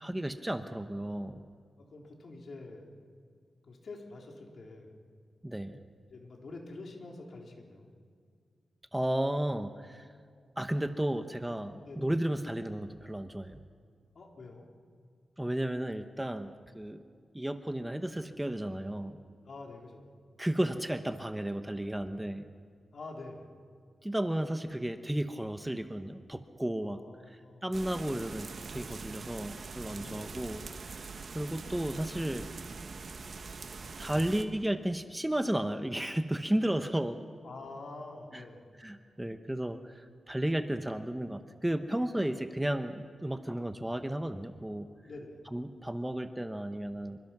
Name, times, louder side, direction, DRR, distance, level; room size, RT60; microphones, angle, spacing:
voice 1, 0.0-1.4 5.4-5.8 8.9-10.1 10.6-13.6 15.4-17.0 17.3-19.2 20.4-22.4 24.0-27.0 27.3-31.1 31.3-32.5 34.0-37.2 38.3-38.4 38.8-44.9 45.5-47.2, right 1 dB, 10° right, 8 dB, 0.9 m, -33 dB
voice 2, 1.8-2.9 3.7-4.9 6.1-7.9 11.8-12.1 14.1-14.7 19.4-20.2 22.9-23.5 26.8-27.9 30.0-30.3 37.4-38.7 45.1-45.5, left 2 dB, 60° left, 0 dB, 4.0 m, -47 dB
sound 1, 27.7-34.4, right 4 dB, 55° right, 1.5 m, -43 dB
27.0 x 24.5 x 6.1 m, 2.1 s
wide cardioid pair, 125°, 0 cm